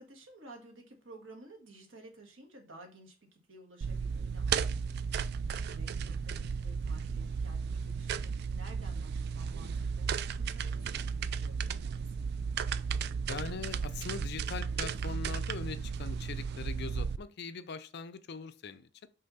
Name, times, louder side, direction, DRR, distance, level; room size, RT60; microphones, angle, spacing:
voice 1, 0.0-12.3, right 1 dB, 90° right, 1.8 m, -54 dB
sound 1, 3.8-17.2, right 6 dB, 55° right, 0.3 m, -34 dB
voice 2, 13.3-19.1, left 5 dB, 60° left, 0.5 m, -42 dB
5.6 x 3.5 x 5.5 m
head